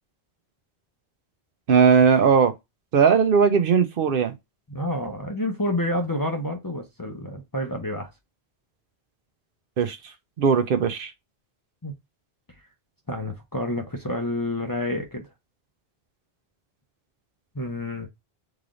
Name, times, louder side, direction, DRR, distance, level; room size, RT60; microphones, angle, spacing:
voice 1, 1.7-2.5 2.9-4.3 9.8-10.0 10.4-11.1, right 6 dB, 65° right, 0.7 m, -18 dB
voice 2, 4.7-8.1 11.8-11.9 13.1-15.3 17.5-18.1, left 1 dB, 25° left, 0.6 m, -29 dB
3.7 x 3.3 x 2.4 m
omnidirectional pair, 1.0 m